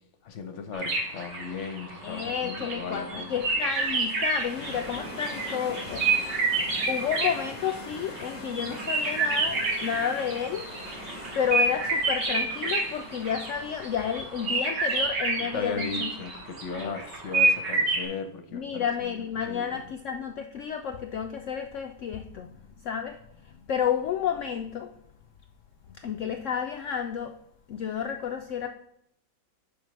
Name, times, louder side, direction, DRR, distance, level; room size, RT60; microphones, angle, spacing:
voice 1, 0.2-3.3 15.4-19.8, left 4 dB, 55° left, 8 dB, 0.9 m, -36 dB
sound 1, 0.7-7.9 8.2-18.1, right 3 dB, 85° right, 2.3 m, -29 dB
voice 2, 2.0-10.7 11.3-16.1 16.8-16.9 18.5-24.9 25.9-27.3 27.7-28.7, left 7 dB, 75° left, 5 dB, 0.7 m, -31 dB
sound 2, 3.1-14.5, left 1 dB, 25° left, 0.7 m, -43 dB
10.5 x 5.0 x 3.2 m, 0.74 s
omnidirectional pair, 1.8 m